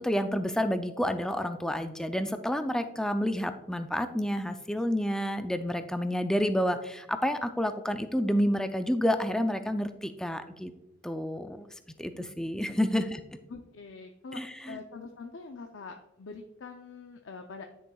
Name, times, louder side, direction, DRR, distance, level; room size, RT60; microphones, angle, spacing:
voice 1, 0.0-10.7 11.0-11.7 12.0-13.2 14.3-14.8, equal, 5° left, 8 dB, 0.3 m, -29 dB
voice 2, 13.5-14.4 14.7-17.6, left 4 dB, 75° left, 4 dB, 0.5 m, -44 dB
10.5 x 6.4 x 2.3 m, 0.92 s
head